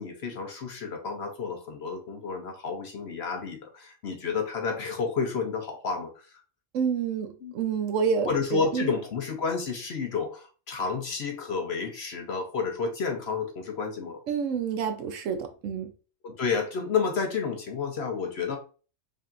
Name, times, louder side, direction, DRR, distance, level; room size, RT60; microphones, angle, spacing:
voice 1, 0.0-6.2 7.4-7.5 8.3-14.2 16.2-18.6, left 5 dB, 55° left, 0.8 m, -30 dB
voice 2, 6.7-8.9 14.3-15.9, right 6 dB, 70° right, 0.9 m, -28 dB
5.0 x 2.7 x 2.5 m
omnidirectional pair, 1.5 m